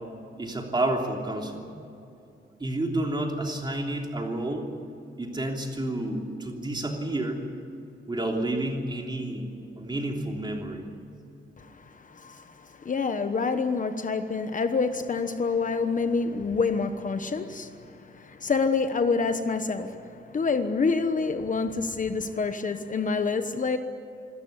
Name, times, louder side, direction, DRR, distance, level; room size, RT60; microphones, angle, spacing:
voice 1, 0.4-1.6 2.6-4.7 5.2-7.4 8.1-9.5 9.8-10.8, right 1 dB, 25° right, 1 dB, 3.2 m, -30 dB
voice 2, 11.6-23.8, left 4 dB, 40° left, 8 dB, 1.1 m, -27 dB
26.5 x 13.5 x 9.8 m, 2.7 s
wide cardioid pair, 150°, 19 cm